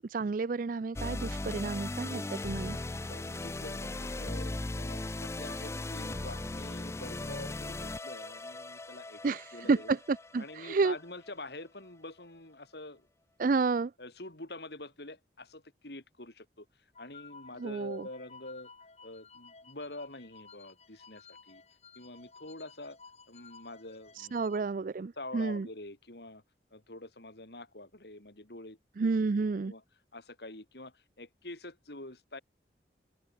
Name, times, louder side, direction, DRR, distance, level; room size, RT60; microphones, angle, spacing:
voice 1, 0.1-2.8 9.2-10.9 13.4-13.9 17.6-18.1 24.2-25.7 29.0-29.7, right 4 dB, 50° right, 0.4 m, -30 dB
sound 1, 1.0-11.3, left 2 dB, 15° left, 0.4 m, -38 dB
voice 2, 3.1-9.9 10.4-13.1 14.0-18.7 19.0-21.6 22.0-23.0 23.3-24.4 25.2-26.4 26.7-29.8 30.1-32.4, left 2 dB, 65° left, 3.9 m, -46 dB
sound 2, 16.9-24.6, left 5 dB, 35° left, 5.4 m, -55 dB
open air
head